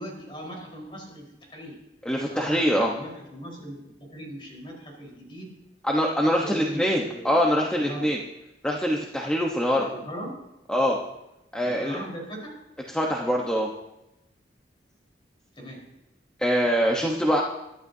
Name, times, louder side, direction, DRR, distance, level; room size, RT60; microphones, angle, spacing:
voice 1, 0.0-1.8 2.3-5.5 6.4-8.1 9.7-10.4 11.6-12.5 15.5-15.8, right 1 dB, 30° left, -1 dB, 4.3 m, -39 dB
voice 2, 2.0-2.9 5.8-8.2 8.6-9.9 10.7-11.0 11.5-12.0 12.9-13.7 16.4-17.4, equal, 5° left, -2 dB, 1.0 m, -24 dB
23.0 x 11.0 x 2.8 m, 0.91 s
head